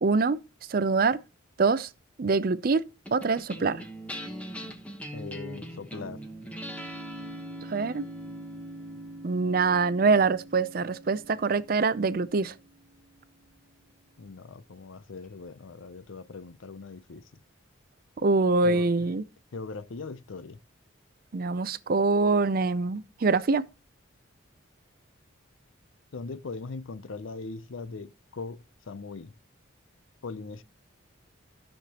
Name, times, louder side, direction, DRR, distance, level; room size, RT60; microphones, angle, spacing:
voice 1, 0.0-0.4 0.7-1.2 1.6-1.9 2.2-3.8 7.7-8.0 9.2-12.5 18.2-19.2 21.3-23.6, right 4 dB, 45° right, 0.5 m, -24 dB
sound 1, 3.1-13.7, equal, 5° left, 1.1 m, -42 dB
voice 2, 5.1-6.2 14.2-17.2 18.6-18.9 19.5-20.6 26.1-29.3 30.2-30.6, left 4 dB, 70° left, 0.6 m, -40 dB
13.0 x 6.6 x 2.9 m
head